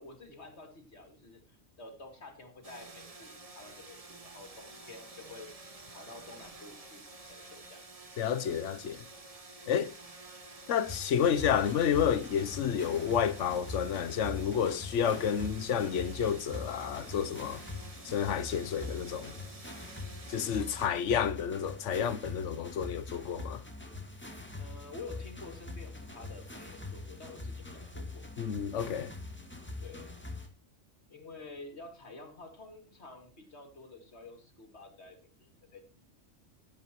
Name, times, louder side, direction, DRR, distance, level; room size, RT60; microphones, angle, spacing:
voice 1, 0.0-5.5 5.9-7.8 24.5-28.3 29.8-30.1 31.1-35.8, left 3 dB, 65° left, 2.8 m, -50 dB
sound 1, 2.6-20.9, right 2 dB, 30° right, 1.4 m, -50 dB
voice 2, 8.2-9.0 9.7-9.9 10.7-17.6 18.0-19.3 20.3-23.6 28.4-29.1, left 8 dB, 80° left, 1.1 m, -30 dB
sound 2, 10.9-30.5, left 2 dB, 10° left, 1.9 m, -43 dB
17.0 x 8.5 x 3.0 m
omnidirectional pair, 1.2 m